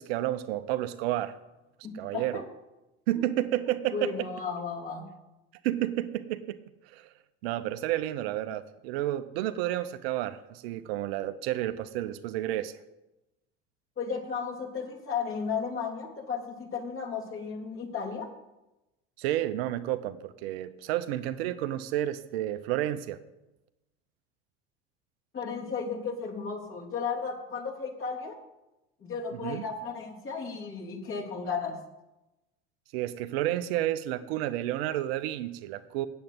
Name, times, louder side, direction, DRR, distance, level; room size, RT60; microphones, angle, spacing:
voice 1, 0.0-1.4 1.9-2.4 3.1-4.3 5.6-6.6 6.9-7.1 7.4-12.7 19.2-23.2 29.4-29.6 32.9-36.1, right 13 dB, 65° right, 12 dB, 0.7 m, -31 dB
voice 2, 1.8-2.4 3.9-5.1 14.0-18.3 25.3-28.4 29.0-31.8, left 5 dB, 40° left, -2 dB, 3.4 m, -34 dB
8.5 x 7.9 x 8.0 m, 0.98 s
hypercardioid pair, 70°, 33 cm